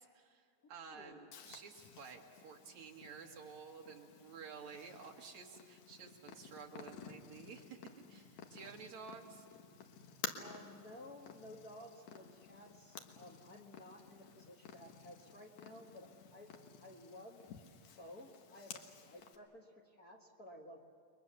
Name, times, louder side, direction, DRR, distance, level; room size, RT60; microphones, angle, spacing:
voice 1, 0.0-9.4, right 5 dB, 75° right, 2 dB, 3.3 m, -52 dB
voice 2, 0.6-1.3 10.4-16.5 16.8-17.4 18.0-20.9, left 1 dB, 40° left, 0 dB, 1.7 m, -55 dB
Purr, 1.3-19.4, left 6 dB, 70° left, 2.7 m, -53 dB
30.0 x 22.5 x 6.9 m, 2.2 s
omnidirectional pair, 3.3 m